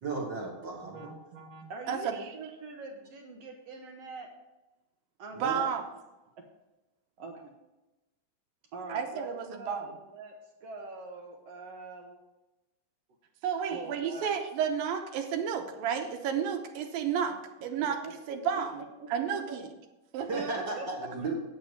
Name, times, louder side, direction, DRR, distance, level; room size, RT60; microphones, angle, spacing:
voice 1, 0.0-1.1 5.3-5.6 20.3-21.3, right 3 dB, 45° right, -1 dB, 1.5 m, -35 dB
voice 2, 0.8-4.3 5.2-5.8 6.4-6.5 7.2-7.5 8.7-12.2 13.7-14.3 17.8-19.6 20.8-20.9, right 3 dB, 70° right, 3 dB, 1.6 m, -44 dB
voice 3, 5.4-5.8 8.9-9.9 13.4-17.4 17.6-18.0 18.3-18.8 19.1-19.7 20.1-20.5, right 7 dB, 85° right, 4 dB, 2.6 m, -31 dB
9.5 x 7.4 x 5.2 m, 1.0 s
omnidirectional pair, 4.1 m